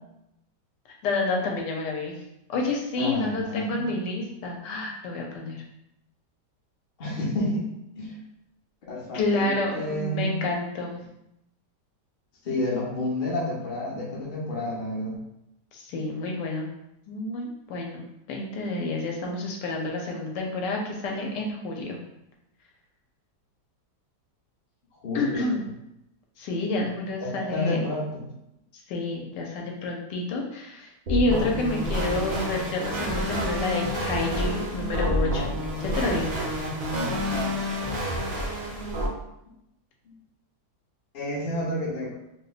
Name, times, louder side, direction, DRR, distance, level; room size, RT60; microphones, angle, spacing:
voice 1, 1.0-2.2 2.5-5.6 9.1-11.0 15.7-16.7 17.1-22.0 25.1-25.6 26.4-27.8 28.9-35.5 35.8-36.5, left 2 dB, 85° left, 0 dB, 1.3 m, -29 dB
voice 2, 3.0-3.9 7.0-8.2 8.8-10.3 12.4-15.1 25.0-25.5 27.2-28.3 40.1-40.2 41.1-42.2, left 1 dB, 45° left, -3 dB, 0.7 m, -30 dB
sound 1, 31.1-39.1, equal, 65° right, 0.5 m, -28 dB
2.8 x 2.2 x 3.9 m, 0.83 s
omnidirectional pair, 1.8 m